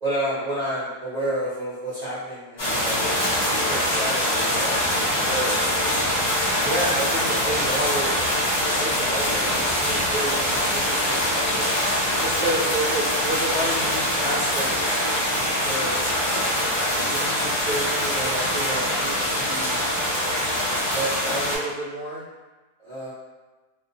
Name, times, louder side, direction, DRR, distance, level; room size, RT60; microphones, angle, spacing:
voice 1, 0.0-3.0 3.6-4.8 5.3-5.5 6.6-8.2 8.6-11.7 12.2-16.0 16.7-19.8 20.6-22.2 22.8-23.1, right 1 dB, 50° right, -10 dB, 0.5 m, -30 dB
sound 1, 2.6-21.6, equal, 40° left, 0.7 m, -23 dB
2.4 x 2.1 x 2.6 m, 1.2 s
omnidirectional pair, 1.6 m